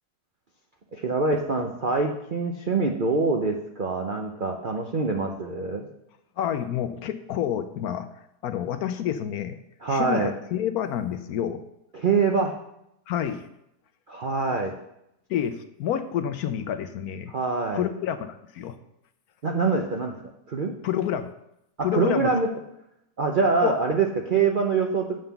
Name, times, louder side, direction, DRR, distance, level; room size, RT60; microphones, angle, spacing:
voice 1, 0.9-5.9 9.8-10.3 11.9-12.5 14.1-14.7 17.3-17.9 19.4-20.2 20.5-20.7 21.9-22.5 23.2-25.2, right 4 dB, 60° right, 2 dB, 0.5 m, -24 dB
voice 2, 6.4-8.1 8.4-9.6 9.9-11.6 13.1-13.4 15.3-17.3 17.7-18.8 20.8-21.3 21.8-22.3 23.6-23.8, left 9 dB, 70° left, 10 dB, 1.0 m, -28 dB
7.8 x 5.7 x 7.0 m, 0.82 s
omnidirectional pair, 1.8 m